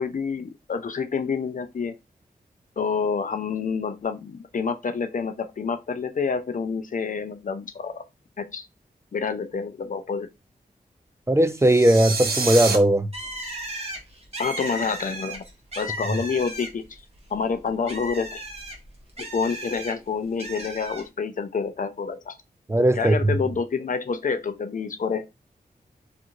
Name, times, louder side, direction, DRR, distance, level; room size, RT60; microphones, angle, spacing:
voice 1, 0.0-2.0 2.8-8.0 8.4-8.7 9.1-10.3 14.4-15.4 15.8-17.0 17.3-18.5 19.2-22.3 22.8-25.3, left 5 dB, 50° left, 0.4 m, -28 dB
voice 2, 11.3-13.1 22.7-23.3, right 1 dB, 15° right, 0.3 m, -18 dB
sound 1, 11.6-12.8, right 4 dB, 70° right, 0.7 m, -27 dB
Bird, 13.1-17.0 17.3-19.9 20.4-21.0, right 1 dB, 40° right, 1.1 m, -35 dB
2.8 x 2.5 x 2.4 m
cardioid pair, 50°, 17 cm